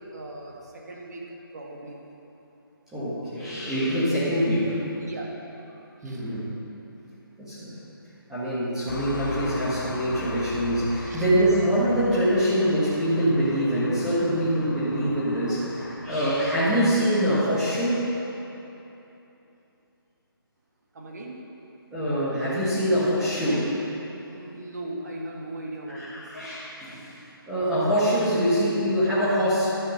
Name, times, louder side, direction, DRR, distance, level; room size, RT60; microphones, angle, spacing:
voice 1, 0.1-1.2 1.5-1.9 5.0-5.3 6.0-6.2 11.0-11.3 20.9-21.4 24.2-26.2, right 1 dB, 45° right, -1 dB, 1.7 m, -38 dB
voice 2, 2.9-4.8 6.0-6.5 7.4-7.7 8.3-18.1 21.9-23.8 25.9-27.1 27.5-29.7, equal, 5° right, -13 dB, 1.5 m, -24 dB
sound 1, 8.9-16.6, left 2 dB, 55° left, 1.2 m, -38 dB
12.5 x 5.8 x 6.5 m, 3.0 s
figure-of-eight pair, 165°, 12 cm